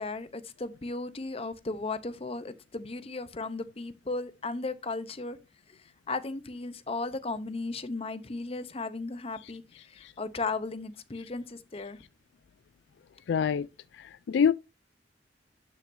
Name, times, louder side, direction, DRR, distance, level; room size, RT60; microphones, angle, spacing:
voice 1, 0.0-5.4 5.7-5.8 6.1-12.0, left 3 dB, 35° left, 0.7 m, -36 dB
voice 2, 13.3-13.7 14.0-14.5, left 7 dB, 70° left, 0.3 m, -26 dB
11.5 x 6.1 x 2.6 m
head